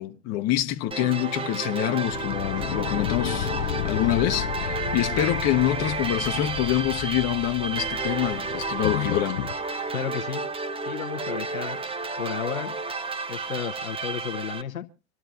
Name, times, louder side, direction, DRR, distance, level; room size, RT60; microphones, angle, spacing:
voice 1, 0.0-3.5 3.8-9.4, left 13 dB, 40° left, 1.0 m, -26 dB
sound 1, 0.9-14.6, right 4 dB, 15° right, 0.7 m, -31 dB
sound 2, 2.0-9.6, left 15 dB, 65° left, 0.7 m, -33 dB
voice 2, 9.9-10.4 10.9-11.8 12.2-12.7 13.3-14.9, left 8 dB, 90° left, 1.0 m, -32 dB
26.0 x 12.5 x 2.5 m
hypercardioid pair, 95°, 40 cm